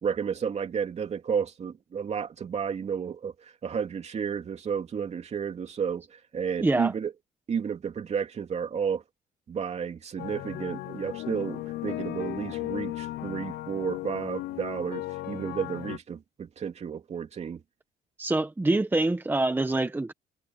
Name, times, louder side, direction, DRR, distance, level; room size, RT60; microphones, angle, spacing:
voice 1, 0.0-3.3 3.6-7.1 7.5-9.0 9.5-17.6, right 7 dB, 40° right, 2.9 m, -32 dB
voice 2, 6.6-6.9 18.2-20.1, right 2 dB, 10° right, 1.3 m, -25 dB
sound 1, 10.2-16.0, left 17 dB, 75° left, 0.8 m, -36 dB
cardioid pair, 110°, 17 cm